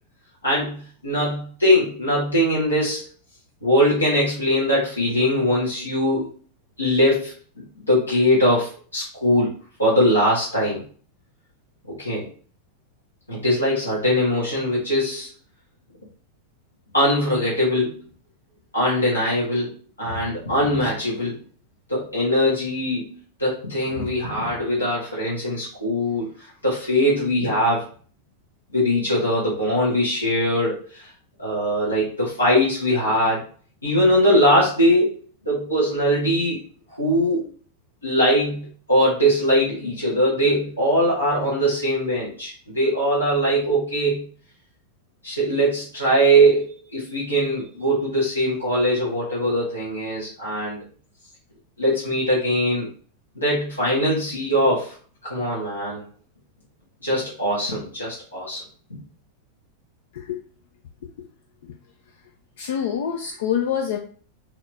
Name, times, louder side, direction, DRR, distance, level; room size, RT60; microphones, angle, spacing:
voice 1, 0.4-3.1 3.6-6.4 6.8-9.5 9.8-10.8 11.9-12.3 13.3-15.3 16.9-18.0 18.7-21.4 21.9-23.1 23.4-26.3 26.6-27.9 28.7-31.1 31.4-33.4 33.8-35.1 35.4-36.6 36.9-37.5 38.0-44.2 45.2-50.8 51.8-52.9 53.4-55.0 55.2-56.0 57.0-58.6 58.9-59.0, equal, 80° left, -7 dB, 1.6 m, -21 dB
voice 2, 62.6-64.0, left 8 dB, 55° left, 2 dB, 0.5 m, -25 dB
3.7 x 3.0 x 3.4 m, 0.43 s
figure-of-eight pair, 90°, 0 cm